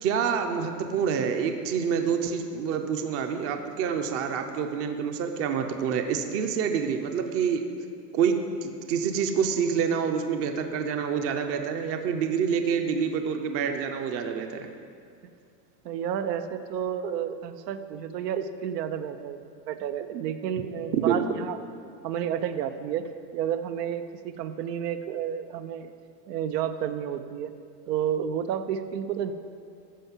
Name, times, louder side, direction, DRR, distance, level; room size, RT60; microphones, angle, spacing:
voice 1, 0.0-7.6 8.1-14.7 20.9-21.2, right 7 dB, 30° right, 6 dB, 0.7 m, -27 dB
voice 2, 15.8-21.6 22.0-23.0 23.3-25.9 26.3-27.5 27.9-29.3, right 9 dB, 75° right, 9 dB, 0.9 m, -31 dB
14.0 x 5.5 x 7.3 m, 2.3 s
supercardioid pair, 150°, 49 cm